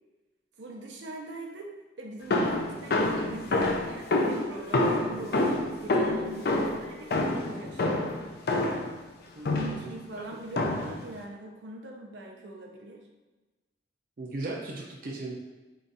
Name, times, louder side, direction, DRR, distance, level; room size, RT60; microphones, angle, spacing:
voice 1, 0.6-8.0 9.4-13.0, right 2 dB, 85° right, 0 dB, 0.7 m, -42 dB
sound 1, 2.3-9.0 9.5-9.9 10.6-11.0, left 2 dB, 60° left, 0.5 m, -27 dB
voice 2, 9.4-10.2 14.2-15.4, right 2 dB, 50° right, -2 dB, 0.5 m, -37 dB
3.8 x 2.4 x 4.0 m, 1.2 s
head